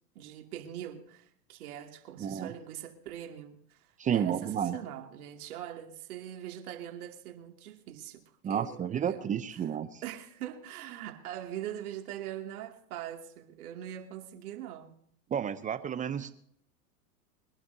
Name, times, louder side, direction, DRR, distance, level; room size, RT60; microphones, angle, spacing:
voice 1, 0.1-9.7 10.0-14.9, right 11 dB, 65° right, 2.7 m, -42 dB
voice 2, 2.2-2.5 4.0-4.8 8.4-10.0 15.3-16.3, right 8 dB, 15° right, 0.6 m, -31 dB
24.0 x 11.5 x 2.8 m
hypercardioid pair, 110°, 48 cm